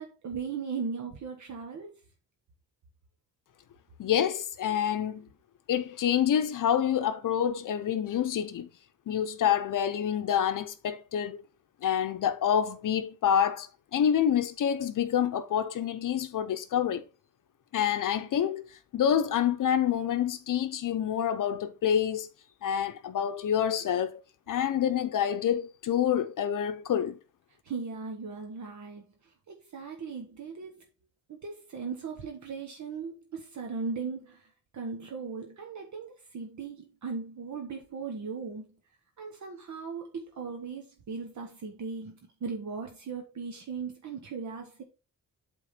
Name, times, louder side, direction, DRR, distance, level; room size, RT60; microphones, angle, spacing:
voice 1, 0.0-1.9 27.6-30.8 31.3-38.7 39.2-44.8, right 5 dB, 55° right, 1.2 m, -38 dB
voice 2, 4.0-5.3 5.7-8.7 9.1-11.4 11.8-17.0 17.7-22.3 22.6-24.2 24.5-27.2, left 9 dB, 65° left, 0.7 m, -27 dB
8.3 x 3.7 x 5.1 m
wide cardioid pair, 180°, 34 cm